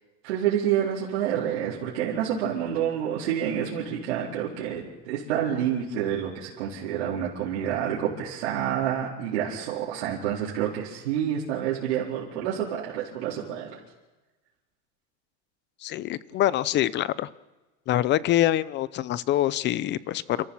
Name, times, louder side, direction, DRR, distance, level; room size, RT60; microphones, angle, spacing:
voice 1, 0.2-13.8, right 9 dB, 90° right, -6 dB, 4.3 m, -28 dB
voice 2, 15.8-17.3 17.9-20.5, left 13 dB, 30° left, 19 dB, 0.6 m, -25 dB
28.5 x 14.5 x 7.3 m, 1.2 s
supercardioid pair, 150°, 34 cm